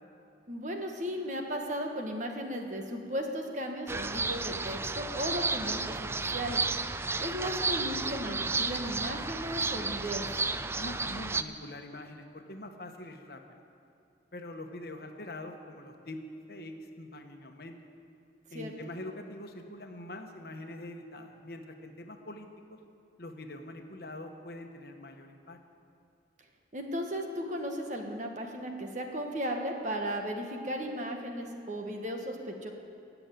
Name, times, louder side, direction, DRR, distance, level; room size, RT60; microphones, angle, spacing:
voice 1, 0.5-6.6 7.2-10.4 18.5-18.7 26.7-32.7, equal, 45° right, 3 dB, 1.5 m, -36 dB
sound 1, 3.9-11.4, right 3 dB, 15° right, 0.3 m, -32 dB
voice 2, 10.7-13.6 14.3-16.2 16.5-17.8 18.5-22.8 23.2-25.6, left 1 dB, 60° left, 5 dB, 1.2 m, -44 dB
17.0 x 7.1 x 9.2 m, 2.6 s
head